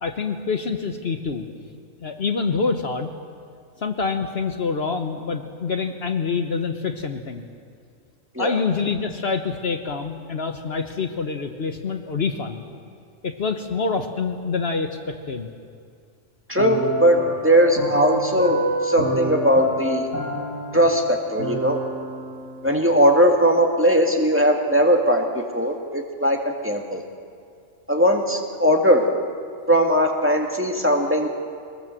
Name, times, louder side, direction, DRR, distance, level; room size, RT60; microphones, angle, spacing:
voice 1, 0.0-1.5 2.0-3.1 3.8-7.5 8.4-12.6 13.2-15.5, left 5 dB, 55° left, 6 dB, 1.3 m, -26 dB
voice 2, 16.5-17.2 17.4-18.6 18.8-20.1 20.7-21.8 22.6-27.0 27.9-29.1 29.7-31.3, equal, 10° right, 2 dB, 1.9 m, -19 dB
sound 1, 16.6-22.9, equal, 80° left, 6.0 m, -28 dB
22.5 x 20.0 x 7.6 m, 2.2 s
omnidirectional pair, 1.3 m